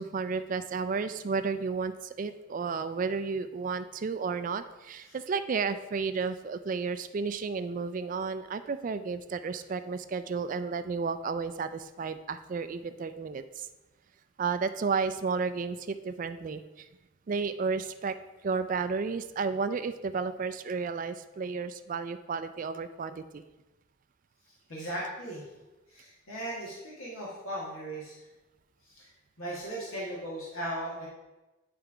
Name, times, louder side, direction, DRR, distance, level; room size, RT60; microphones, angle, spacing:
voice 1, 0.0-13.7 14.4-16.9 17.3-18.2 18.4-23.4, right 5 dB, 40° right, 12 dB, 0.3 m, -32 dB
voice 2, 24.7-25.4 25.9-28.2 28.8-29.1 29.4-31.1, right 1 dB, 85° left, -5 dB, 1.8 m, -37 dB
9.6 x 3.4 x 4.9 m, 1.1 s
head